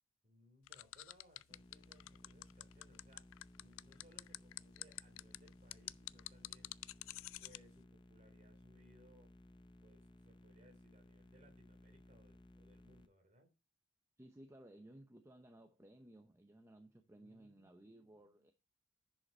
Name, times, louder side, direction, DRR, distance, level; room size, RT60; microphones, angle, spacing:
voice 1, 0.2-3.3 3.6-6.7 7.4-9.3 9.8-13.5 17.2-18.5, equal, 35° right, 2.9 m, -67 dB
sound 1, 0.7-7.6, left 17 dB, 75° left, 0.3 m, -48 dB
sound 2, 1.5-13.1, left 1 dB, 20° left, 0.7 m, -61 dB
voice 2, 14.2-18.5, right 1 dB, 15° right, 0.7 m, -59 dB
10.0 x 5.4 x 4.3 m
head